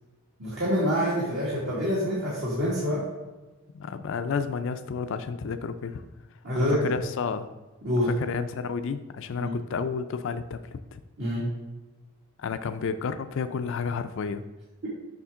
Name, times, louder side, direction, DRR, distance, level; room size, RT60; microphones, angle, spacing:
voice 1, 0.4-3.0 6.4-6.9 7.8-8.1 9.4-9.5 11.2-11.4, equal, 60° right, -8 dB, 1.9 m, -26 dB
voice 2, 3.7-6.0 6.5-7.5 8.1-11.0 12.4-14.5, left 5 dB, 60° left, 9 dB, 0.4 m, -31 dB
7.1 x 5.6 x 3.6 m, 1.2 s
head